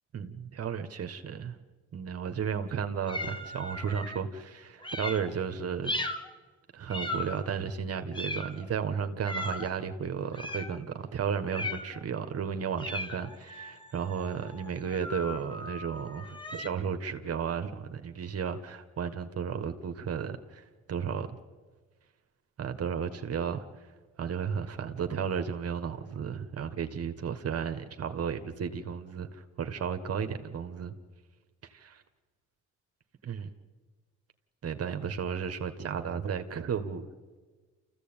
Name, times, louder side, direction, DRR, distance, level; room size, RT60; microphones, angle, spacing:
voice 1, 0.1-1.6 1.9-6.1 6.7-21.4 22.6-23.9 24.2-30.9 31.7-32.0 33.2-33.5 34.6-37.1, right 7 dB, 50° right, 8 dB, 1.6 m, -34 dB
sound 1, 3.1-4.2 4.8-5.3 5.8-6.3 6.9-7.6 8.1-8.7 9.3-9.7 10.3-10.8 11.5-12.0 12.8-16.7, left 1 dB, 15° left, 2.0 m, -37 dB
28.5 x 15.0 x 8.9 m, 1.4 s
cardioid pair, 90°, 30 cm